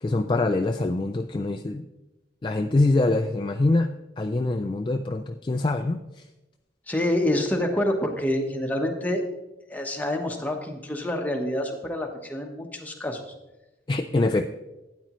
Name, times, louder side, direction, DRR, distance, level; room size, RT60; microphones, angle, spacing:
voice 1, 0.0-1.8 2.4-3.9 4.2-6.0 13.9-14.5, left 2 dB, 25° left, 6 dB, 0.3 m, -24 dB
voice 2, 6.9-9.2 9.7-13.2, left 1 dB, 10° left, 2 dB, 1.0 m, -27 dB
12.5 x 9.2 x 3.0 m, 1.0 s
head